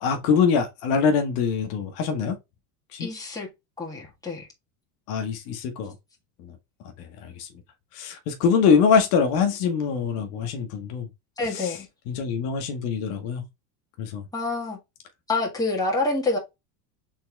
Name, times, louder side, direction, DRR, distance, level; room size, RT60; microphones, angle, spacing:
voice 1, 0.0-2.4 2.9-3.1 5.1-5.9 6.4-6.5 7.0-7.5 7.9-11.1 11.5-11.8 12.1-13.4 14.0-14.2, left 6 dB, 65° left, 1.2 m, -24 dB
voice 2, 3.0-3.5 3.8-4.5 11.4-11.9 14.3-14.8 15.3-16.4, left 3 dB, 10° left, 1.6 m, -27 dB
4.3 x 3.7 x 3.2 m
supercardioid pair, 125°, 48 cm